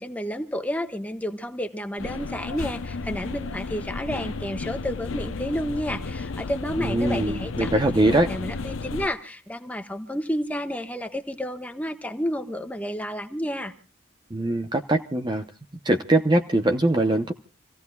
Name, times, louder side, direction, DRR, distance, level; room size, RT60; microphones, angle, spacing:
voice 1, 0.0-13.7, equal, 5° left, 5 dB, 1.3 m, -31 dB
sound 1, 2.0-9.1, left 3 dB, 80° left, 0.7 m, -33 dB
voice 2, 6.8-8.3 14.3-15.4 15.8-17.3, right 1 dB, 20° right, 5 dB, 0.7 m, -22 dB
29.0 x 16.5 x 2.3 m, 0.33 s
head